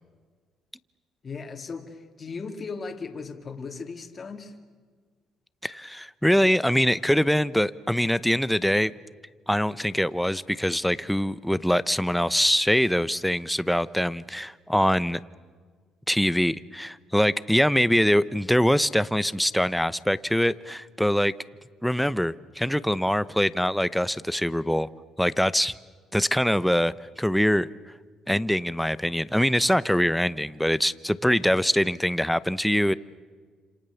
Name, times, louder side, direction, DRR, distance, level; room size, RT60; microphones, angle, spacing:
voice 1, 1.2-4.5, left 4 dB, 35° left, 5 dB, 2.6 m, -37 dB
voice 2, 5.6-8.9 9.5-15.2 16.1-21.3 21.8-24.9 25.2-25.7 26.1-27.7 28.3-32.9, equal, ahead, 16 dB, 0.8 m, -23 dB
29.5 x 27.5 x 7.1 m, 1.6 s
cardioid pair, 95°, 0 cm